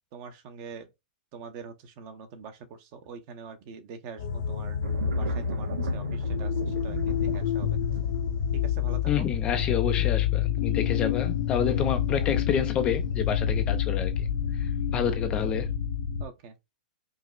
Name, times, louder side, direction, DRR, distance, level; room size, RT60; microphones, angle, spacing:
voice 1, 0.1-0.9 1.3-4.8 5.1-7.8 8.5-9.3 16.2-16.6, right 6 dB, 35° right, 0.7 m, -44 dB
sound 1, 4.2-16.3, left 8 dB, 55° left, 0.7 m, -28 dB
sound 2, 4.8-14.4 14.9-15.4, right 5 dB, 90° right, 0.8 m, -41 dB
voice 2, 9.1-14.3 14.5-15.7, left 8 dB, 20° left, 0.3 m, -29 dB
4.9 x 2.0 x 2.3 m
hypercardioid pair, 160°, 5 cm